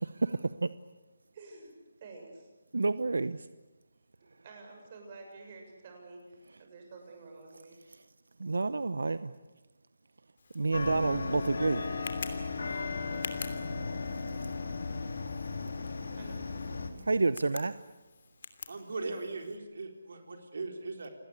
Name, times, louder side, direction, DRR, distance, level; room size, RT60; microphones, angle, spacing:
voice 1, 0.0-0.7 2.7-3.4 8.4-9.3 10.5-11.8 17.0-17.7, right 3 dB, 85° right, 14 dB, 0.9 m, -29 dB
voice 2, 1.3-1.7 2.0-2.5 4.4-7.8 13.0-13.3 16.1-16.5, right 3 dB, 30° right, 2 dB, 6.9 m, -50 dB
Tick, 10.4-19.6, left 5 dB, 50° left, 3.0 m, -48 dB
sound 1, 10.7-16.9, left 4 dB, 75° left, 4.0 m, -36 dB
voice 3, 18.7-21.1, right 3 dB, 60° right, 4 dB, 3.9 m, -39 dB
29.0 x 20.0 x 8.5 m, 1.1 s
hypercardioid pair, 170°, 0 cm